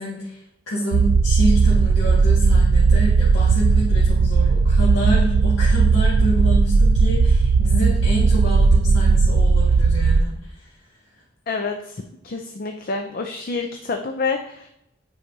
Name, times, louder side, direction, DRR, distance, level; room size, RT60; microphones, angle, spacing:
voice 1, 0.0-10.8 11.1-11.2, equal, 85° left, -9 dB, 1.9 m, -27 dB
sound 1, 0.9-10.2, right 4 dB, 90° right, 0.3 m, -16 dB
voice 2, 11.5-14.7, left 4 dB, 50° left, 4 dB, 0.5 m, -28 dB
9.5 x 4.8 x 2.7 m, 0.81 s
head